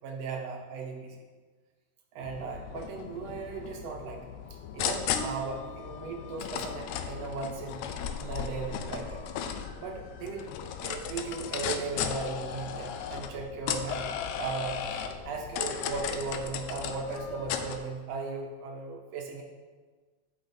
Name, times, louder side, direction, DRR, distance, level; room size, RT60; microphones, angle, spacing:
voice 1, 0.0-1.2 2.1-4.2 4.7-7.8 8.2-9.2 9.8-10.5 10.8-14.9 15.2-19.4, right 4 dB, 70° right, 1 dB, 1.7 m, -37 dB
sound 1, 2.2-17.8, left 8 dB, 80° left, 1.8 m, -36 dB
10.0 x 5.9 x 2.6 m, 1.4 s
omnidirectional pair, 3.3 m